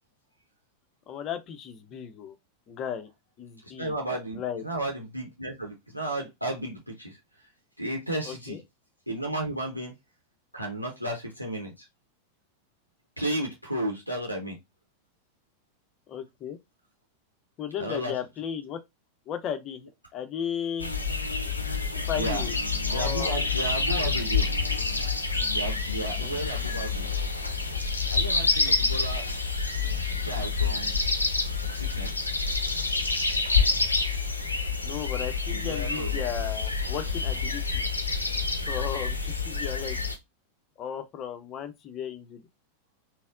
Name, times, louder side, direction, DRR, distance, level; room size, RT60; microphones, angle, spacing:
voice 1, 1.1-2.4 2.7-3.1 3.4-3.9 4.3-4.6 8.3-8.6 16.1-16.6 17.6-18.8 19.3-20.9 22.1-22.5 22.9-23.4 26.2-26.4 34.8-37.8 38.7-40.0 40.8-42.4, left 9 dB, 35° left, 0.6 m, -35 dB
voice 2, 3.6-7.2 7.8-8.6 9.1-9.9 10.5-11.8 13.2-14.6 17.8-18.1 22.1-22.4 22.9-24.5 25.5-27.1 28.1-29.2 30.1-30.9 31.7-32.2 35.5-36.1, right 1 dB, 90° right, 0.7 m, -33 dB
sound 1, 20.8-40.2, left 4 dB, 80° left, 0.6 m, -28 dB
4.1 x 2.0 x 2.4 m
figure-of-eight pair, 90°, 0 cm